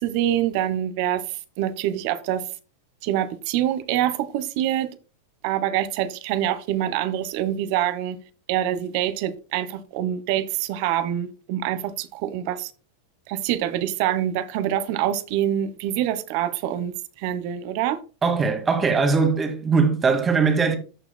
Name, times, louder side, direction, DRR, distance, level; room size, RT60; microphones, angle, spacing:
voice 1, 0.0-1.2 1.6-2.4 3.0-4.9 5.4-8.2 8.5-12.7 13.3-18.0, right 11 dB, 55° right, 1.2 m, -25 dB
voice 2, 18.2-20.8, right 5 dB, 20° right, 2.0 m, -20 dB
14.0 x 5.8 x 2.2 m
hypercardioid pair, 100°, 0 cm